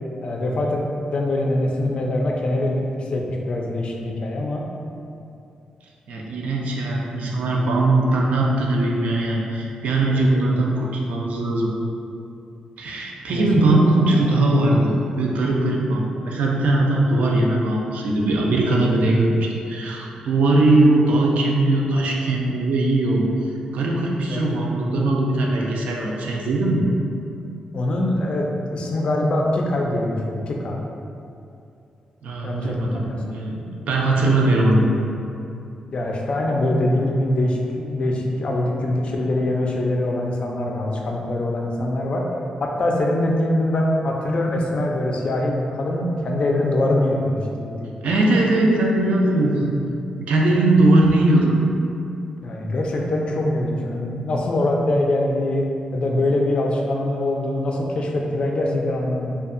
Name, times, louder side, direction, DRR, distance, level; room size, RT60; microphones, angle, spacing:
voice 1, 0.2-0.8 1.1-4.6 10.1-10.5 13.3-14.2 24.3-24.5 27.7-30.8 32.4-33.4 35.9-42.2 42.6-47.9 52.4-55.7 55.9-59.3, left 1 dB, 50° left, 0 dB, 0.3 m, -23 dB
voice 2, 6.1-11.7 12.8-23.3 23.7-26.9 32.2-33.0 33.3-33.6 33.9-34.9 48.0-49.7 50.2-51.6, right 2 dB, 80° right, -2 dB, 0.4 m, -20 dB
2.7 x 2.3 x 2.4 m, 2.6 s
cardioid pair, 95°, 2 cm